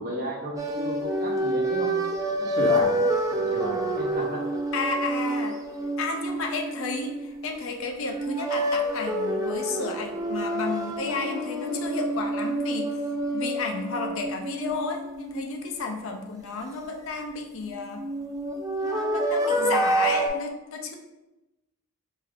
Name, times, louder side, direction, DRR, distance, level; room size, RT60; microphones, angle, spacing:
voice 1, 0.0-1.9 2.3-3.0 3.3-4.4, equal, 45° right, -3 dB, 0.9 m, -32 dB
sound 1, 0.6-7.6 8.1-15.9 17.6-20.3, right 1 dB, 15° right, 0.3 m, -28 dB
voice 2, 4.7-5.6 6.0-13.0 13.3-18.1 18.8-20.9, left 3 dB, 65° left, 3 dB, 0.5 m, -32 dB
5.0 x 2.7 x 2.4 m, 1.0 s
head